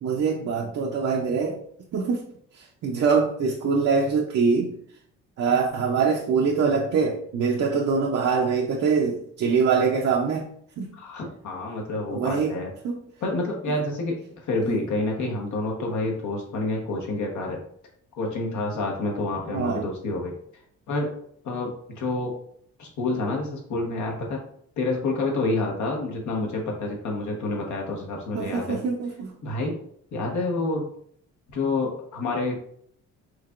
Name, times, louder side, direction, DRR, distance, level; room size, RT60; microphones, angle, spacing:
voice 1, 0.0-1.6 1.9-2.2 2.8-4.7 5.4-10.5 10.8-10.9 12.1-12.5 12.8-13.0 14.6-14.8 19.5-19.8 28.3-29.3, right 5 dB, 55° right, 0.6 m, -23 dB
voice 2, 10.9-12.7 13.2-17.6 18.2-20.3 20.9-21.1 21.4-21.7 22.0-22.3 22.8-24.4 24.8-28.8 29.4-29.8 30.1-30.9 31.5-32.6, left 2 dB, 70° left, 1.1 m, -28 dB
4.6 x 2.8 x 2.4 m
cardioid pair, 90°, 30 cm